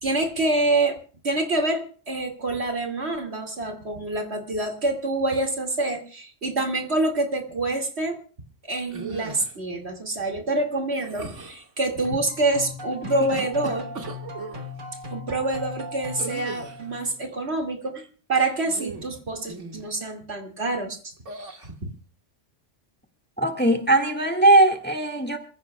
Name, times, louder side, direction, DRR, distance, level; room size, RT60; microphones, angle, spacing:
voice 1, 0.0-1.0 1.2-8.2 8.6-13.9 15.1-21.1 21.4-21.9, right 2 dB, 60° right, 2.5 m, -26 dB
sound 1, 8.9-9.6 11.0-11.7 12.9-14.7 16.2-16.9 18.6-19.2 19.5-19.9 21.3-21.7, right 4 dB, 80° right, 2.1 m, -37 dB
sound 2, 12.0-17.2, left 3 dB, 45° right, 1.6 m, -38 dB
voice 2, 23.4-25.4, right 2 dB, 10° left, 1.6 m, -19 dB
27.0 x 15.0 x 2.2 m
omnidirectional pair, 1.3 m